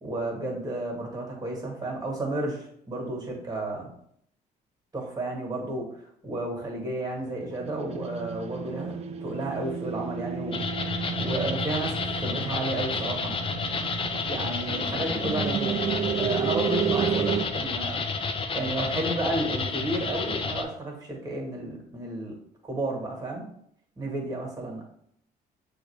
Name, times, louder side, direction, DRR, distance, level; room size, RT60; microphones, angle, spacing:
voice 1, 0.0-3.9 4.9-5.9 6.2-10.6 11.2-13.3 14.3-18.0 18.5-22.3 22.6-23.5 24.0-24.8, right 2 dB, 25° right, -1 dB, 1.5 m, -32 dB
sound 1, 7.2-17.4, right 8 dB, 40° right, 0.4 m, -32 dB
sound 2, 10.5-20.6, left 4 dB, 30° left, 0.5 m, -30 dB
6.2 x 2.5 x 3.2 m, 0.69 s
cardioid pair, 110°, 17 cm